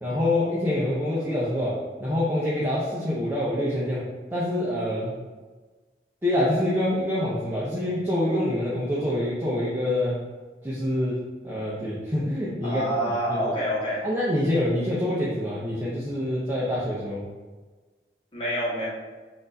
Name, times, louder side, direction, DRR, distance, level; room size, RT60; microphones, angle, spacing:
voice 1, 0.0-4.1 4.3-5.1 6.2-10.2 10.6-13.5 14.0-17.3, left 1 dB, 15° right, -8 dB, 0.6 m, -26 dB
voice 2, 12.6-14.0 18.3-18.9, equal, 30° left, -6 dB, 1.2 m, -27 dB
4.3 x 2.6 x 4.0 m, 1.3 s
head